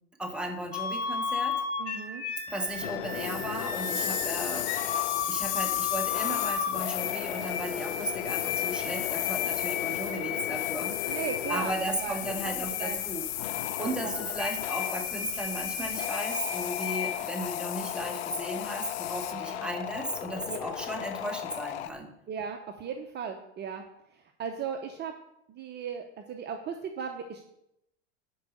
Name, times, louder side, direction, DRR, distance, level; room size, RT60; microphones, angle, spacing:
voice 1, 0.2-1.5 2.5-5.0 5.3-11.2 11.5-13.2 13.8-22.1, right 1 dB, 5° right, 2 dB, 1.6 m, -35 dB
sound 1, 0.7-17.1, left 6 dB, 50° left, 2.0 m, -35 dB
voice 2, 1.8-2.2 11.1-11.7 12.0-12.2 12.6-13.1 13.8-13.9 19.3-19.7 20.5-20.6 22.3-23.8 24.1-25.1 25.5-27.4, right 7 dB, 30° right, 5 dB, 0.8 m, -37 dB
sound 2, 2.6-21.9, left 12 dB, 90° left, 0.6 m, -37 dB
sound 3, 3.1-19.3, left 15 dB, 65° left, 0.9 m, -36 dB
10.0 x 4.7 x 6.6 m, 0.82 s
hypercardioid pair, 105°, 33 cm